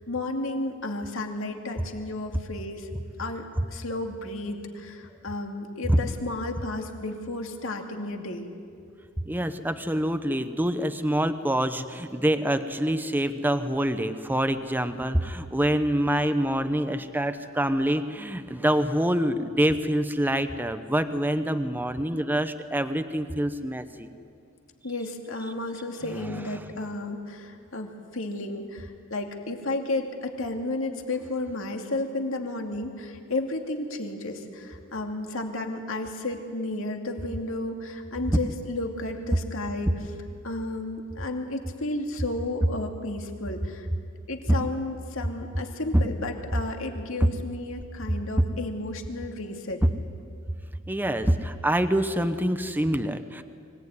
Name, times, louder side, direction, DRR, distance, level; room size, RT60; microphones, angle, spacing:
voice 1, 0.1-2.9 3.2-8.5 24.8-39.9 40.4-43.9 44.3-49.8, left 2 dB, 65° left, 3 dB, 2.5 m, -33 dB
voice 2, 9.2-24.1 26.0-26.7 44.5-44.6 47.2-47.3 48.4-48.5 49.8-49.9 50.9-53.4, right 1 dB, 10° right, 9 dB, 0.8 m, -26 dB
24.5 x 18.0 x 9.6 m, 2.3 s
head